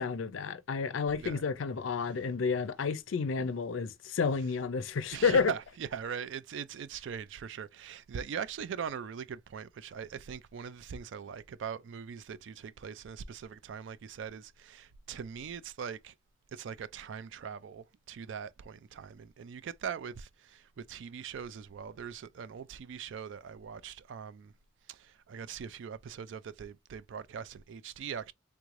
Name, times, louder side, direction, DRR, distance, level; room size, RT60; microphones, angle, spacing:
voice 1, 0.0-5.5, left 5 dB, 85° left, 0.5 m, -30 dB
voice 2, 5.1-16.1 16.5-24.5 24.9-28.3, right 7 dB, 70° right, 0.3 m, -41 dB
3.4 x 3.1 x 2.4 m
head